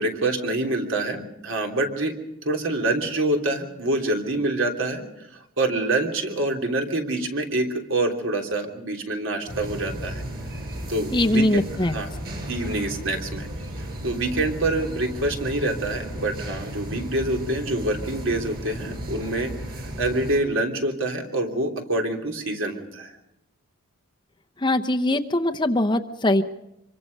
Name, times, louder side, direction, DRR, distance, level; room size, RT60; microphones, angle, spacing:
voice 1, 0.0-2.1 2.4-5.0 5.6-10.2 10.9-12.1 12.5-13.7 14.0-19.5 20.0-23.1, right 2 dB, 60° right, 3 dB, 3.3 m, -26 dB
sound 1, 9.5-20.4, equal, 45° right, 6.9 m, -34 dB
voice 2, 11.1-12.0 24.6-26.4, left 1 dB, 20° left, 7 dB, 0.8 m, -21 dB
26.0 x 23.5 x 5.4 m, 0.88 s
head